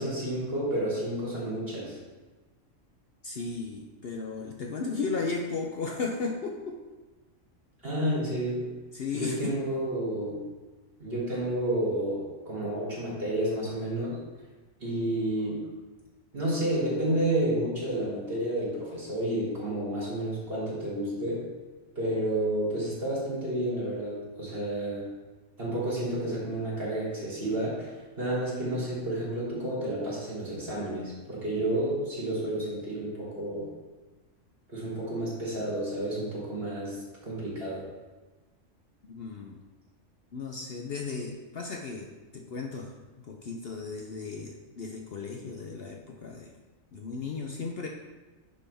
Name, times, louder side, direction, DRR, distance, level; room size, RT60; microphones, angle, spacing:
voice 1, 0.0-2.0 7.8-8.7 9.1-10.4 11.0-14.2 14.8-15.6 16.3-21.5 21.9-25.0 25.6-33.7 34.7-37.8, right 1 dB, 45° right, -7 dB, 3.2 m, -30 dB
voice 2, 3.2-6.8 8.9-9.5 39.0-39.6 40.3-42.9 43.2-46.5 46.9-47.9, left 4 dB, 55° left, 1 dB, 0.8 m, -35 dB
10.0 x 5.3 x 3.4 m, 1.2 s
omnidirectional pair, 1.3 m